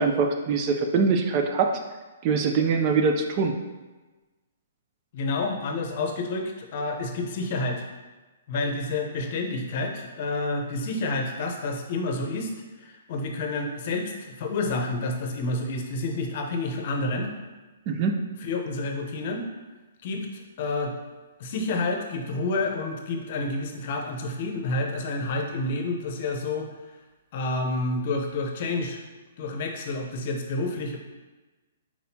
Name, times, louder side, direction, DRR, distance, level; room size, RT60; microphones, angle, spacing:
voice 1, 0.0-1.8 2.2-3.6 17.9-18.2, right 5 dB, 35° right, 5 dB, 0.4 m, -23 dB
voice 2, 5.1-7.9 8.5-12.5 12.8-14.1 14.4-17.3 18.4-19.4 20.0-20.9 21.4-26.7 27.3-29.0 29.4-31.0, left 2 dB, 50° left, 2 dB, 0.7 m, -29 dB
4.4 x 4.1 x 2.8 m, 1.2 s
hypercardioid pair, 140°, 0 cm